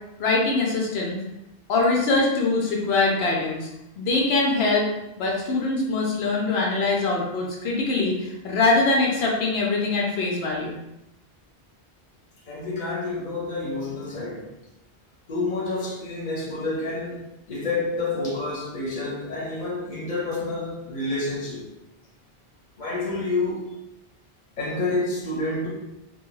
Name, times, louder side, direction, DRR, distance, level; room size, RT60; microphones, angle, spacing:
voice 1, 0.2-1.2 1.7-3.7 4.0-4.8 5.2-10.8, left 3 dB, 85° left, 0.9 m, -23 dB
voice 2, 12.5-14.5 15.3-21.7 22.8-23.7 24.6-25.7, left 2 dB, 50° left, 0.8 m, -29 dB
2.3 x 2.2 x 3.0 m
omnidirectional pair, 1.0 m